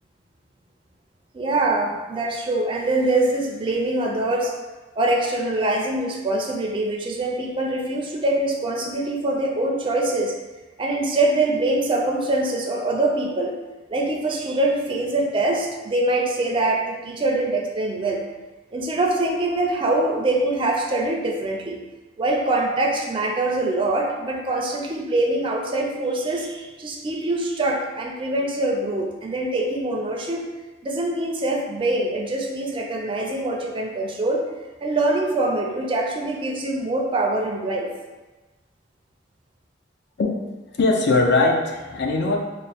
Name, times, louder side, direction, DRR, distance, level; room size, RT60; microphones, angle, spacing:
voice 1, 1.3-4.5 5.0-10.3 10.8-13.5 13.9-18.2 18.7-21.8 22.2-30.4 30.8-34.4 34.8-37.9, right 2 dB, 30° right, 0 dB, 0.4 m, -24 dB
voice 2, 40.8-42.4, left 3 dB, 65° left, 1 dB, 0.5 m, -20 dB
3.4 x 2.1 x 4.0 m, 1.2 s
head